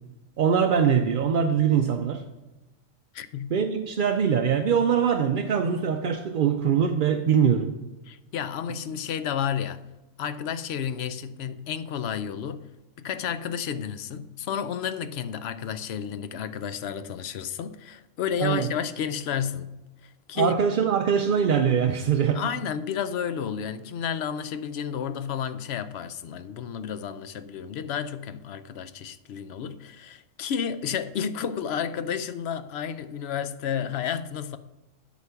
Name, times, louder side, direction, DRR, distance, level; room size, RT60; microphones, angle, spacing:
voice 1, 0.4-2.2 3.5-7.7 18.4-18.7 20.3-22.4, right 7 dB, 55° right, 0.6 m, -22 dB
voice 2, 3.1-3.6 8.1-9.8 10.2-12.7 13.0-19.7 20.0-20.5 22.3-34.6, left 8 dB, 60° left, 0.7 m, -31 dB
8.3 x 8.1 x 5.7 m
omnidirectional pair, 1.4 m